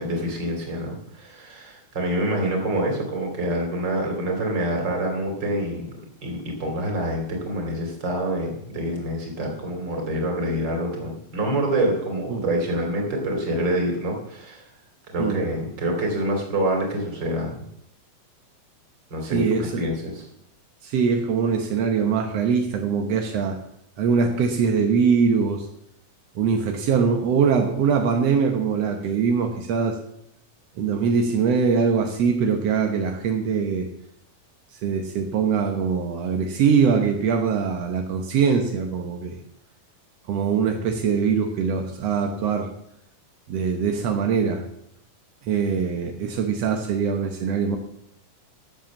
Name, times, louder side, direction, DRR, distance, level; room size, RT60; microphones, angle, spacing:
voice 1, 0.0-5.9 6.2-14.6 15.1-17.6 19.1-20.3, right 1 dB, 30° right, 2 dB, 3.1 m, -26 dB
voice 2, 19.3-19.8 20.8-23.6 24.0-25.7 26.3-30.0 30.8-33.9 34.8-39.4 40.3-42.7 43.5-44.6 45.4-47.8, right 6 dB, 70° right, 4 dB, 1.5 m, -22 dB
13.0 x 7.8 x 7.2 m, 0.76 s
omnidirectional pair, 4.4 m